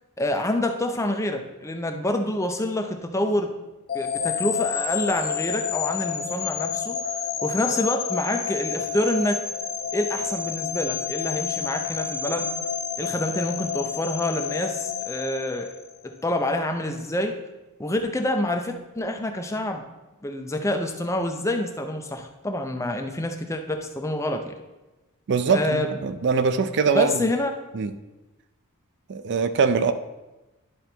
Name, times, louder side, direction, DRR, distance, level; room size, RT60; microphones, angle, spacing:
voice 1, 0.2-3.5 3.9-7.0 7.4-9.4 9.9-12.5 13.0-15.7 16.0-17.4 17.8-19.8 20.2-24.5 25.5-25.9 26.9-27.5, left 1 dB, 15° left, 4 dB, 0.6 m, -27 dB
sound 1, 3.9-16.0, left 7 dB, 45° left, 1.0 m, -29 dB
voice 2, 25.3-27.3 27.7-27.9 29.1-29.9, right 5 dB, 55° right, 11 dB, 0.4 m, -22 dB
11.0 x 3.9 x 4.4 m, 1.1 s
head